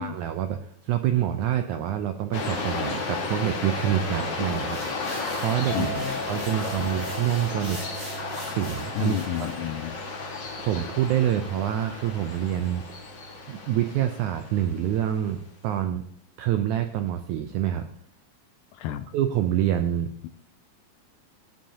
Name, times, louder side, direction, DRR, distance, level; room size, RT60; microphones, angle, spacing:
voice 1, 0.0-5.9 6.2-7.8 8.4-9.2 10.6-12.9 13.5-16.0 16.4-17.9 19.1-20.3, right 11 dB, 90° right, 8 dB, 1.7 m, -26 dB
sound 1, 2.3-15.2, left 3 dB, 40° left, 1.8 m, -34 dB
sound 2, 4.4-9.6, equal, 5° right, 4.1 m, -43 dB
voice 2, 5.7-6.2 6.7-6.9 9.0-10.0 18.7-19.1, left 11 dB, 80° left, 10 dB, 2.0 m, -31 dB
Chink clink, 5.7-12.0, right 1 dB, 75° right, 5.3 m, -41 dB
16.0 x 10.0 x 2.8 m, 0.68 s
omnidirectional pair, 4.1 m